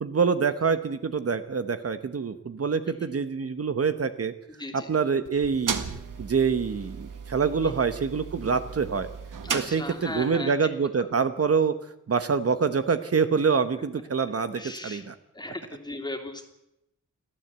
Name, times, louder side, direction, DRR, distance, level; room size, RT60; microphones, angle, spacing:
voice 1, 0.0-4.3 4.7-5.8 6.2-9.1 9.5-11.8 12.1-15.1, right 5 dB, 50° right, 10 dB, 1.1 m, -26 dB
sound 1, 5.2-10.3, right 6 dB, 85° right, 1.8 m, -36 dB
voice 2, 9.4-10.5 11.0-11.1 14.5-15.1 15.3-16.4, left 2 dB, 15° left, 5 dB, 2.9 m, -37 dB
30.0 x 12.0 x 8.1 m, 0.87 s
wide cardioid pair, 140°, 31 cm